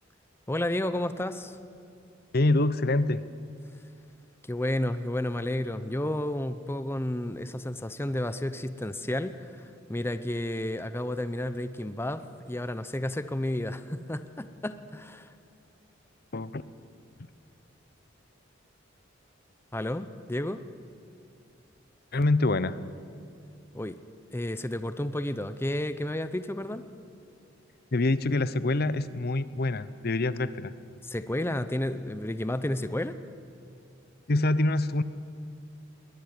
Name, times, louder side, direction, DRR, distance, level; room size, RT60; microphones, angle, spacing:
voice 1, 0.5-1.6 4.5-15.3 19.7-20.7 23.7-24.0 24.3-26.9 31.0-33.1, left 1 dB, 10° left, 12 dB, 0.7 m, -31 dB
voice 2, 2.3-3.2 16.3-16.6 22.1-22.8 27.9-30.7 34.3-35.0, left 2 dB, 55° left, 15 dB, 0.8 m, -25 dB
21.5 x 20.0 x 9.5 m, 2.5 s
head